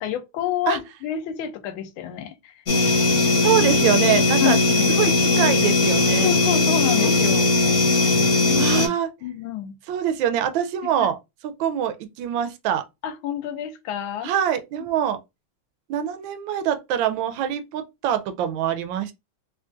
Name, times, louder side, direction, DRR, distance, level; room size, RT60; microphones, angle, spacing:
voice 1, 0.0-2.5 4.4-4.9 6.2-7.5 8.5-8.8 9.2-9.8 13.0-14.3, left 11 dB, 75° left, 1.4 m, -28 dB
sound 1, 2.7-8.9, left 3 dB, 45° left, 1.1 m, -19 dB
voice 2, 3.4-4.6 5.0-6.3 8.6-9.1 9.9-11.2 11.4-12.8 14.2-15.2 15.9-19.1, right 10 dB, 75° right, 1.2 m, -24 dB
3.7 x 2.4 x 2.5 m
omnidirectional pair, 2.4 m